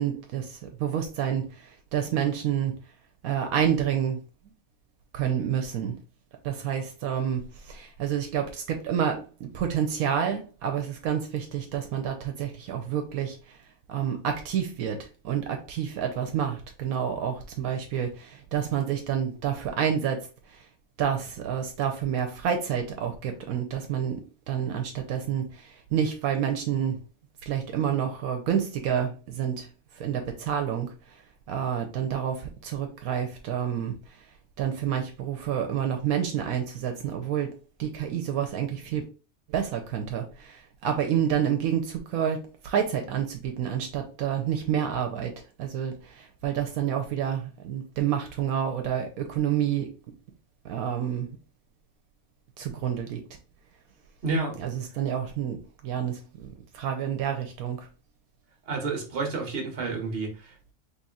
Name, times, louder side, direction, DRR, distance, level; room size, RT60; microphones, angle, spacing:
voice 1, 0.0-2.7 3.2-4.2 5.1-6.0 6.4-13.6 13.9-20.6 21.0-24.2 24.5-27.0 27.5-29.7 29.9-30.9 31.5-33.9 34.6-39.0 39.5-45.3 45.6-49.9 50.6-51.3 52.6-53.2 54.6-55.6 55.8-57.9, right 9 dB, 80° right, 1.1 m, -29 dB
voice 2, 54.2-54.6 58.7-60.7, right 3 dB, 45° right, 1.2 m, -30 dB
4.1 x 3.1 x 2.3 m
omnidirectional pair, 1.5 m